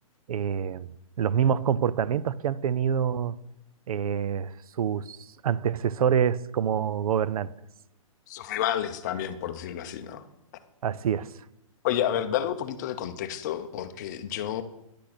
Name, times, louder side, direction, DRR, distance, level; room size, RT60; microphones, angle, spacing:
voice 1, 0.3-0.9 1.2-3.3 3.9-7.5 10.8-11.3, right 8 dB, 85° right, 0.5 m, -26 dB
voice 2, 8.3-10.2 11.8-14.6, left 11 dB, 30° left, 0.6 m, -30 dB
10.0 x 6.2 x 5.9 m
hypercardioid pair, 165°, 18 cm